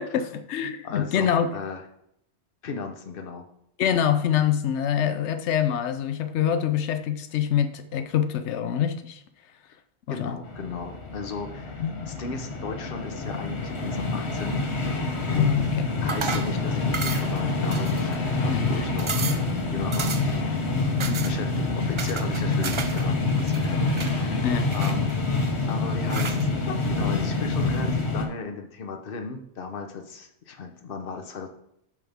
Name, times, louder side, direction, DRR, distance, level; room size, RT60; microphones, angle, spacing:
voice 1, 0.0-1.6 3.8-9.2 10.1-10.4 11.8-12.0 15.3-15.9 18.5-18.7 21.1-21.2 24.4-24.7 26.7-26.8, left 9 dB, 90° left, 9 dB, 0.9 m, -25 dB
voice 2, 0.8-1.8 2.6-3.4 10.1-14.6 15.3-15.5 16.0-20.7 21.2-23.9 24.7-25.1 25.7-26.5 26.9-31.5, left 4 dB, 55° left, 4 dB, 1.1 m, -36 dB
sound 1, 10.4-28.2, left 3 dB, 75° left, 1.4 m, -26 dB
sound 2, 16.1-16.6 16.9-17.4 17.7-18.3 18.7-18.8 19.0-19.5 19.9-20.4 21.0-21.3 22.0-23.0 23.3-24.1 24.7-25.4 26.1-26.4, right 5 dB, 40° right, 0.4 m, -33 dB
9.1 x 6.3 x 3.5 m, 0.75 s
omnidirectional pair, 1.1 m